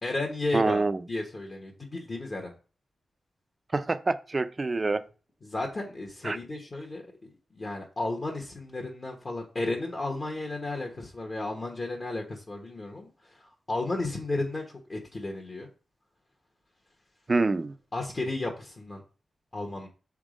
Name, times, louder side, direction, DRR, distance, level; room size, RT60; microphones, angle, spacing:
voice 1, 0.0-0.8 1.1-2.5 5.4-13.1 13.4-14.6 14.9-15.7 17.9-19.0 19.5-19.9, left 2 dB, 35° left, 1.2 m, -33 dB
voice 2, 0.5-1.0 3.7-5.0 6.2-6.4 17.3-17.7, right 3 dB, 30° right, 0.5 m, -26 dB
7.1 x 3.7 x 5.0 m
wide cardioid pair, 125°, 0 cm